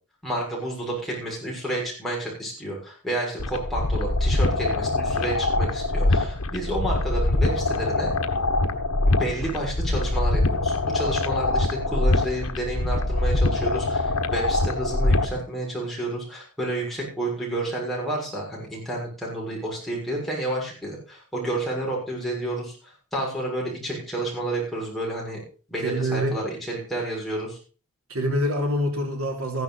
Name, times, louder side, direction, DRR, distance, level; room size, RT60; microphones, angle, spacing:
voice 1, 0.2-8.1 9.1-25.4 25.7-27.6, right 1 dB, ahead, -4 dB, 6.6 m, -30 dB
sound 1, 3.4-15.4, left 2 dB, 75° left, 1.4 m, -24 dB
voice 2, 25.8-26.4 28.1-29.6, equal, 70° right, 2 dB, 3.3 m, -26 dB
15.0 x 11.0 x 4.2 m, 0.38 s
head